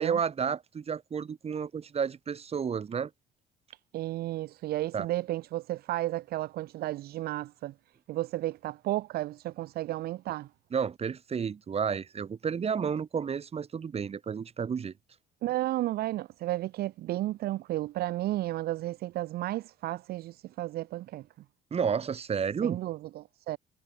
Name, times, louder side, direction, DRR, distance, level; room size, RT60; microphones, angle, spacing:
voice 1, 0.0-3.1 4.9-5.1 10.7-14.9 21.7-22.8, right 6 dB, 35° right, 3.7 m, -31 dB
voice 2, 3.9-7.7 8.1-10.5 15.4-21.3 22.6-23.6, right 15 dB, 65° right, 0.6 m, -33 dB
cardioid pair, 110°, 17 cm